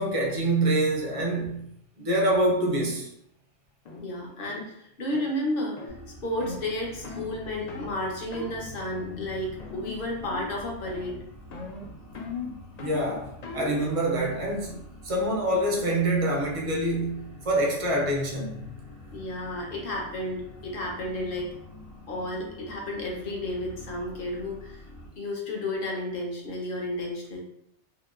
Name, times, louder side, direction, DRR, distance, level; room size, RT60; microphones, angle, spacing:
voice 1, 0.0-1.7 2.0-3.1 12.8-18.6, right 1 dB, 50° right, 0.4 m, -26 dB
sound 1, 3.9-4.0 4.5-4.7 5.1-5.3 5.8-6.0 6.4-6.6 7.0-7.3 7.7-7.9 8.3-8.6 9.0-9.3 9.6-10.0 10.2-10.6 10.9-11.2 11.5-13.8, left 4 dB, 70° left, 0.4 m, -39 dB
voice 2, 4.0-6.0 6.2-11.2 19.1-21.5 22.1-24.8 25.1-27.4, left 1 dB, 55° left, 0.8 m, -32 dB
sound 2, 5.9-25.1, left 1 dB, 90° left, 1.2 m, -46 dB
2.8 x 2.1 x 2.3 m
omnidirectional pair, 1.3 m